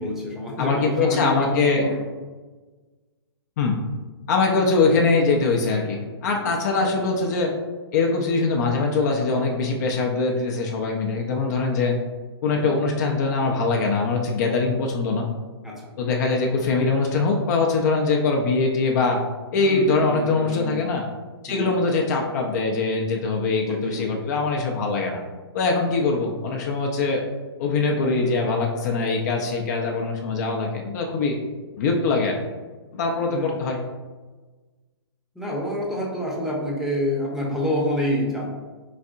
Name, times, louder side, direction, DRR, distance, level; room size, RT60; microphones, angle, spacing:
voice 1, 0.0-2.0 6.4-6.9 12.6-12.8 15.6-15.9 19.5-20.8 21.5-21.7 23.6-24.2 33.3-33.6 35.3-38.5, equal, 5° right, -3 dB, 0.8 m, -28 dB
voice 2, 0.6-1.9 3.6-3.8 4.3-7.5 7.9-12.0 12.4-15.3 16.0-19.2 19.5-21.0 21.4-25.2 25.5-27.2 27.6-31.4 31.8-32.4 32.9-33.8, left 3 dB, 40° left, 1 dB, 0.6 m, -22 dB
4.2 x 4.1 x 2.5 m, 1.3 s
figure-of-eight pair, 120°, 14 cm